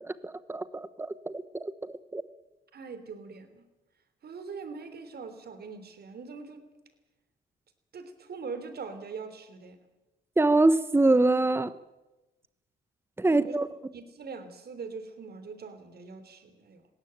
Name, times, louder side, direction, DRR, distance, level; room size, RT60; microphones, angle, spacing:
voice 1, 0.0-2.2 10.4-11.7 13.2-13.7, right 2 dB, 10° right, 1.1 m, -25 dB
voice 2, 2.7-3.6 4.2-6.6 7.9-9.8 13.3-13.6 13.9-16.9, right 5 dB, 55° right, 3.5 m, -42 dB
20.0 x 17.0 x 9.0 m
cardioid pair, 90°, 20 cm